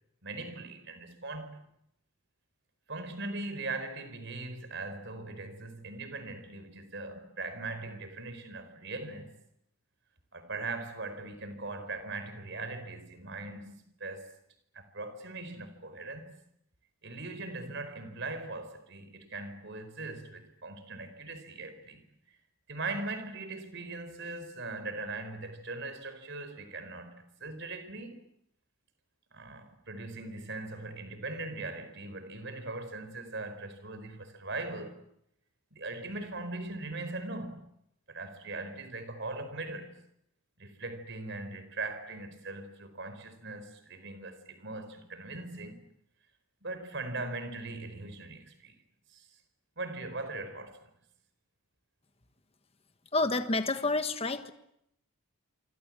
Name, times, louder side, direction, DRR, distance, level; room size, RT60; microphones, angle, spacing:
voice 1, 0.2-1.6 2.9-9.3 10.3-14.3 14.7-16.3 17.0-22.0 22.7-28.2 29.3-35.0 35.7-37.7 38.1-39.9 40.6-45.8 46.6-48.7 49.1-49.3 49.8-50.8, right 2 dB, 55° right, 4.6 m, -40 dB
voice 2, 53.1-54.5, left 2 dB, 25° left, 1.4 m, -29 dB
27.5 x 25.5 x 7.6 m
head